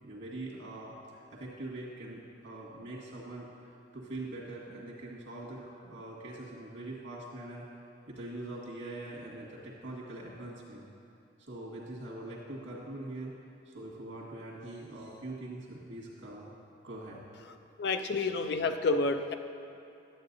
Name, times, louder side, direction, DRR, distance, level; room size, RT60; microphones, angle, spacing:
voice 1, 0.0-3.5 3.9-7.6 8.1-10.8 11.5-13.3 13.7-16.5 16.8-17.2, right 2 dB, 90° right, -5 dB, 1.9 m, -43 dB
voice 2, 17.8-19.3, left 3 dB, 60° left, 7 dB, 0.4 m, -29 dB
11.5 x 7.8 x 2.7 m, 2.6 s
head